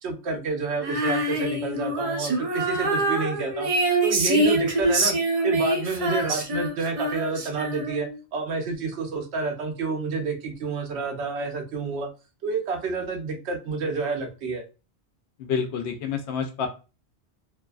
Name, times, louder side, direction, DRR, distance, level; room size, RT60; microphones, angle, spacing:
voice 1, 0.0-3.7 4.0-5.2 5.4-12.1 12.4-14.6, right 3 dB, 75° right, 4 dB, 0.9 m, -29 dB
Female singing, 0.8-8.2, right 2 dB, 45° right, 0.5 m, -25 dB
voice 2, 15.4-16.7, left 6 dB, 80° left, 6 dB, 0.9 m, -28 dB
2.6 x 2.4 x 2.3 m, 0.31 s
omnidirectional pair, 1.1 m